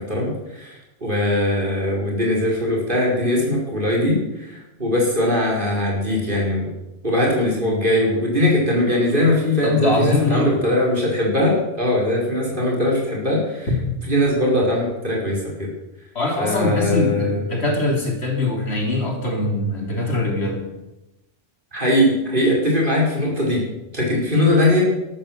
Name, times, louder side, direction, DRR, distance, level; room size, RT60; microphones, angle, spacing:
voice 1, 0.0-6.7 7.0-13.7 14.0-15.7 16.4-17.5 21.7-23.6 23.9-24.8, left 1 dB, 45° right, -3 dB, 5.5 m, -20 dB
voice 2, 9.6-10.6 13.7-13.8 16.2-20.6, left 2 dB, 65° left, 2 dB, 3.6 m, -22 dB
13.0 x 12.5 x 7.7 m, 0.97 s
omnidirectional pair, 1.2 m